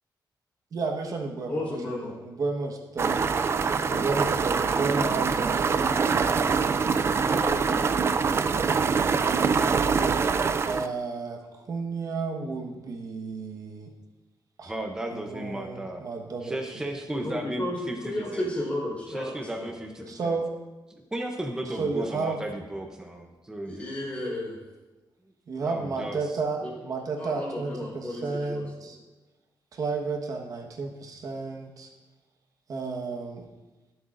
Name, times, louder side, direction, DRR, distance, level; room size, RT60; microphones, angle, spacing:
voice 1, 0.7-3.2 3.9-6.5 10.6-13.9 14.6-14.7 15.1-16.6 20.1-20.5 21.8-22.4 25.5-29.0 29.7-31.9 32.7-33.5, right 4 dB, 50° right, 1 dB, 1.4 m, -32 dB
voice 2, 1.5-2.1 3.9-4.2 7.3-8.3 17.2-17.8 18.0-19.7 23.6-24.6 26.6-26.7 27.2-28.9, left 1 dB, 20° left, -5 dB, 4.5 m, -33 dB
sound 1, 3.0-10.9, right 5 dB, 35° right, 0.4 m, -24 dB
voice 3, 14.7-16.0 16.4-18.4 19.1-20.4 20.9-23.9 25.6-26.4, right 1 dB, 10° right, 2 dB, 0.8 m, -35 dB
23.0 x 7.9 x 2.6 m, 1.2 s
wide cardioid pair, 175°, 8 cm